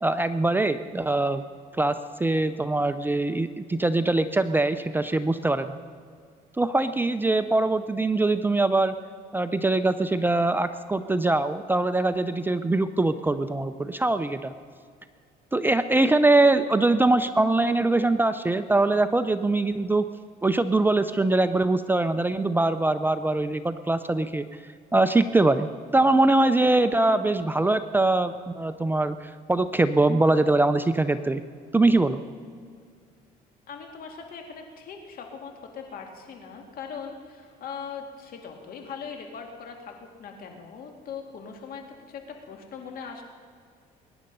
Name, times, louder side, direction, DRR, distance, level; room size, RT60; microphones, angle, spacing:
voice 1, 0.0-1.4 1.8-5.8 6.6-8.9 9.3-14.5 15.5-20.1 20.4-24.5 24.9-31.4 31.7-32.2, right 2 dB, 10° right, 10 dB, 0.5 m, -23 dB
voice 2, 33.7-43.2, left 6 dB, 60° left, 3 dB, 2.4 m, -40 dB
22.0 x 10.5 x 5.5 m, 2.1 s
cardioid pair, 110°, 17 cm